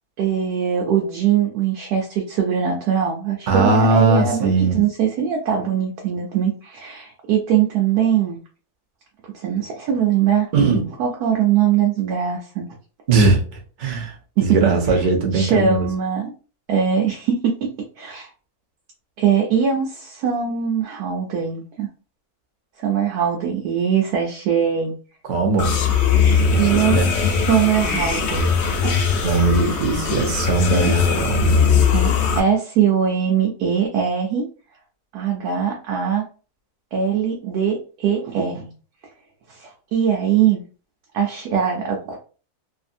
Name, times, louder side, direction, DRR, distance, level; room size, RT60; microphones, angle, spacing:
voice 1, 0.2-8.4 9.3-10.5 11.0-12.7 14.4-14.8 15.3-16.3 16.7-17.7 18.0-18.3 19.2-21.9 22.8-24.9 26.6-28.5 28.8-29.0 30.7-30.9 31.9-34.5 35.1-36.2 36.9-38.7 39.5-40.6 41.1-42.2, right 8 dB, 85° right, 0 dB, 1.2 m, -21 dB
voice 2, 3.5-4.8 10.5-10.8 13.1-14.2 14.4-15.9 25.2-25.7 26.5-27.1 29.2-31.7, right 4 dB, 55° right, 2 dB, 0.5 m, -19 dB
sound 1, 25.6-32.4, left 5 dB, 65° left, 0.7 m, -19 dB
2.6 x 2.6 x 2.5 m, 0.37 s
omnidirectional pair, 1.6 m